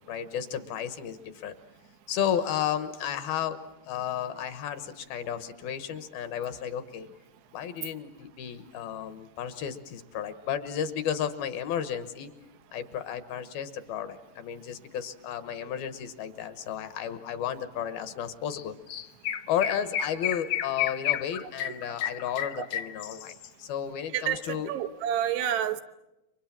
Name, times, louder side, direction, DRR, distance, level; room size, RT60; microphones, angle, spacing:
voice 1, 0.1-1.6 2.1-3.6 3.9-7.1 7.5-12.3 12.7-18.7 19.5-24.7, left 9 dB, 70° left, 11 dB, 2.8 m, -33 dB
Chirp tweet, 18.5-18.6 18.9-23.5, left 10 dB, 85° left, 1.5 m, -31 dB
voice 2, 24.7-25.8, right 10 dB, 80° right, 8 dB, 3.2 m, -28 dB
29.5 x 24.0 x 7.4 m, 0.95 s
omnidirectional pair, 4.8 m